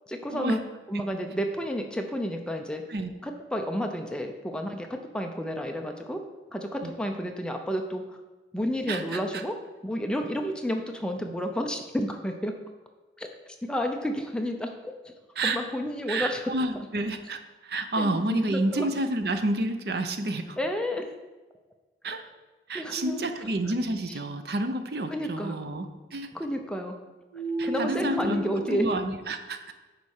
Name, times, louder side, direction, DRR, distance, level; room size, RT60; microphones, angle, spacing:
voice 1, 0.1-0.6 0.9-2.8 3.2-6.2 6.5-8.2 8.5-9.6 9.8-12.6 13.2-13.3 13.6-14.9 15.4-16.5 18.0-18.9 20.6-21.1 22.7-23.2 24.1-24.2 25.1-25.6 26.3-27.0 27.6-28.9, equal, 5° left, 4 dB, 0.6 m, -31 dB
voice 2, 8.9-9.4 15.4-15.6 16.1-20.6 22.0-22.2 22.7-26.3 27.6-29.7, right 2 dB, 60° right, 8 dB, 0.7 m, -30 dB
sound 1, 23.1-24.4 27.3-28.8, equal, 80° right, 3.3 m, -34 dB
9.8 x 4.2 x 6.5 m, 1.2 s
head